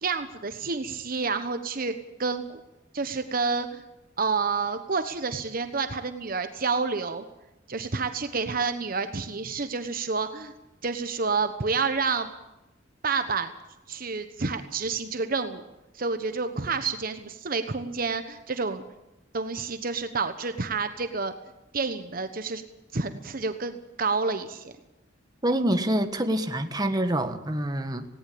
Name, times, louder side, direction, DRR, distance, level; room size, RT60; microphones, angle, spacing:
voice 1, 0.0-1.9 2.2-2.6 2.9-3.8 4.2-7.2 7.7-10.5 10.8-12.3 13.0-13.5 13.9-15.6 15.9-18.8 19.3-21.3 21.7-22.6 22.9-24.7, right 4 dB, 50° right, 9 dB, 1.1 m, -29 dB
voice 2, 25.4-28.0, right 1 dB, 20° right, 7 dB, 1.5 m, -26 dB
18.5 x 18.0 x 8.7 m, 0.97 s
head